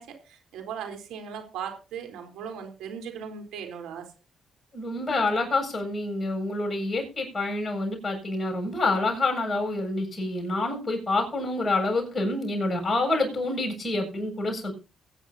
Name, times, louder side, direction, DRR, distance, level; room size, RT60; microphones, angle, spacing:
voice 1, 0.0-4.1, right 7 dB, 90° right, 5 dB, 3.9 m, -38 dB
voice 2, 4.7-14.7, left 2 dB, 25° left, 2 dB, 7.6 m, -27 dB
23.0 x 9.9 x 2.8 m, 0.32 s
cardioid pair, 90°, 0 cm